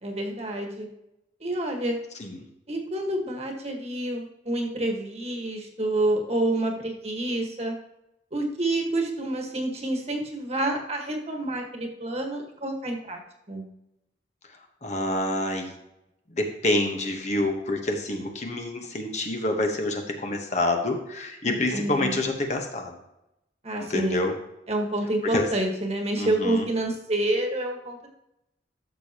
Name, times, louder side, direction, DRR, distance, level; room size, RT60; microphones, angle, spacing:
voice 1, 0.0-0.9 1.4-2.0 2.7-7.8 8.3-13.2 13.5-13.7 21.4-22.2 23.6-24.3 24.7-28.1, right 1 dB, 35° right, 2 dB, 1.5 m, -28 dB
voice 2, 14.8-15.7 16.3-23.0 23.8-24.3 25.2-25.5 26.2-26.7, left 1 dB, 40° left, 3 dB, 1.2 m, -27 dB
13.0 x 6.8 x 3.0 m, 0.85 s
head